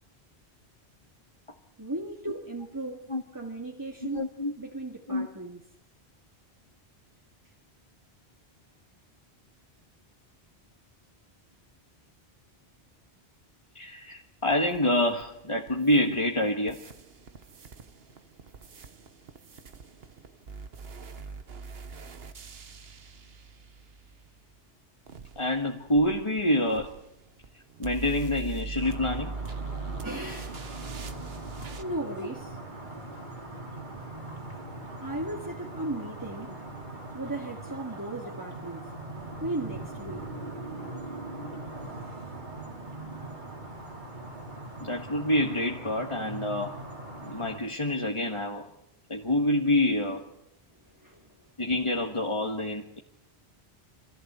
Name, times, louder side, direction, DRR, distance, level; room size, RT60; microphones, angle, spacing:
voice 1, 1.8-4.2 4.6-5.6 30.0-30.6 31.8-32.6 35.0-36.6 37.1-38.8 39.4-40.3 51.0-51.2, right 1 dB, 20° right, 1.9 m, -36 dB
voice 2, 4.0-4.5 5.1-5.3 13.7-16.8 25.3-26.9 27.8-29.3 44.8-46.8 47.2-48.7 49.1-50.2 51.6-53.0, left 1 dB, 30° left, 1.6 m, -27 dB
sound 1, 14.5-16.4 16.7-24.4 25.1-31.8, right 4 dB, 65° right, 1.4 m, -42 dB
sound 2, 28.8-47.6, right 2 dB, 45° right, 3.3 m, -41 dB
26.0 x 15.0 x 8.1 m
omnidirectional pair, 1.1 m